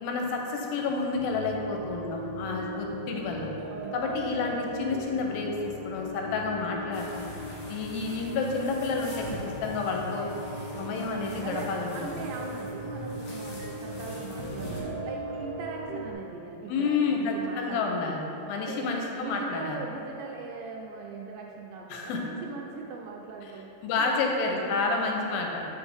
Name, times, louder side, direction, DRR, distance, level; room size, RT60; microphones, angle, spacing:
voice 1, 0.0-3.5 3.9-7.2 7.7-10.3 10.7-12.0 16.7-19.8 21.9-22.2 23.8-25.7, left 4 dB, 90° left, 1 dB, 2.5 m, -30 dB
sound 1, 1.1-16.1, right 1 dB, 65° right, 1.8 m, -38 dB
voice 2, 2.5-2.9 3.7-4.0 11.2-18.2 18.5-25.5, right 4 dB, 80° right, 0 dB, 2.0 m, -40 dB
sound 2, 6.9-14.8, equal, 65° left, 3.1 m, -43 dB
7.1 x 5.2 x 3.5 m, 2.9 s
omnidirectional pair, 4.1 m